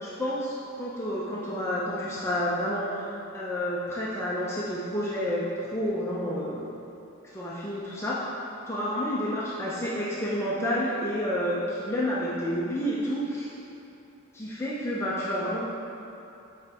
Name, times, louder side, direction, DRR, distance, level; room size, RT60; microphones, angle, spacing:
voice 1, 0.0-3.1 3.3-6.6 7.3-8.2 8.7-13.5 14.3-15.7, equal, 10° left, -7 dB, 0.6 m, -29 dB
8.3 x 5.1 x 3.5 m, 2.8 s
head